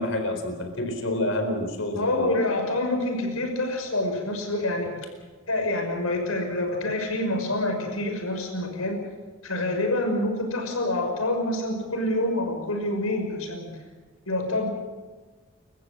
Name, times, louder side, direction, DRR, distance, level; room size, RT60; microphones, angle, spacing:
voice 1, 0.0-2.4, left 1 dB, 65° left, 6 dB, 4.3 m, -28 dB
voice 2, 1.9-4.9 5.5-9.0 9.4-13.7 14.3-14.7, left 1 dB, 85° left, 3 dB, 6.1 m, -27 dB
30.0 x 14.5 x 7.7 m, 1.3 s
head